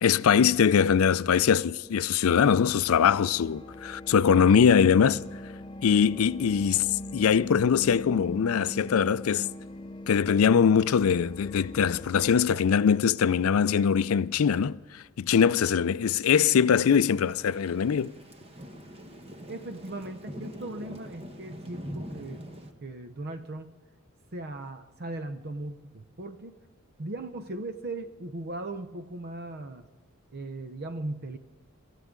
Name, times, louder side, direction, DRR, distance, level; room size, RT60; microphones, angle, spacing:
voice 1, 0.0-5.2 5.8-9.5 10.1-18.1, left 7 dB, 80° left, 0.4 m, -22 dB
sound 1, 2.3-12.4, left 1 dB, 20° left, 0.5 m, -42 dB
Thunder / Rain, 16.4-22.7, equal, 30° right, 1.2 m, -43 dB
voice 2, 19.5-22.5 22.8-23.7 24.3-26.5 27.0-29.9 30.3-31.4, right 2 dB, 50° right, 0.7 m, -38 dB
26.0 x 14.5 x 3.8 m
head